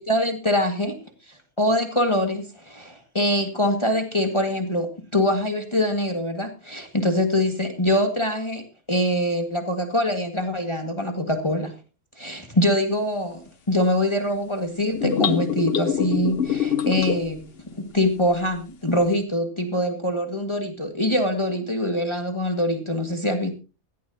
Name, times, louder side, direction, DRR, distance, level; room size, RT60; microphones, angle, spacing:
voice 1, 0.1-0.9 1.3-8.6 8.9-11.7 12.2-17.4 17.8-23.5, left 1 dB, 20° left, 4 dB, 2.0 m, -24 dB
sound 1, 14.9-17.4, left 8 dB, 50° left, 1.0 m, -24 dB
17.5 x 15.5 x 2.8 m, 0.33 s
omnidirectional pair, 1.5 m